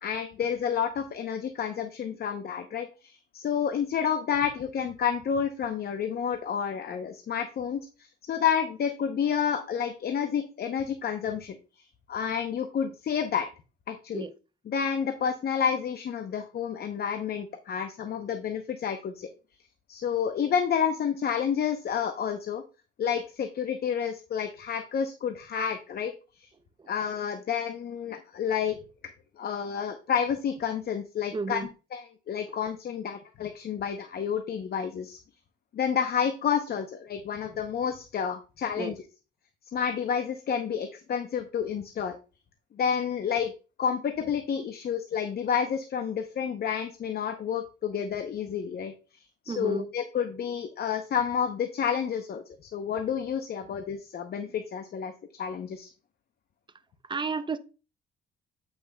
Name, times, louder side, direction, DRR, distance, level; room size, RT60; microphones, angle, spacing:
voice 1, 0.0-11.6 12.1-13.5 13.9-14.2 14.7-19.3 19.9-22.6 23.0-26.1 26.4-26.5 26.9-28.8 29.4-31.6 31.9-35.2 35.7-39.0 39.7-42.2 42.8-43.5 43.8-55.1 55.4-55.9, left 7 dB, 50° left, 0.7 m, -30 dB
voice 2, 31.3-31.7 38.8-38.9 49.5-49.9 57.1-57.6, right 4 dB, 25° right, 0.5 m, -32 dB
8.0 x 5.7 x 2.2 m
cardioid pair, 90°, 20 cm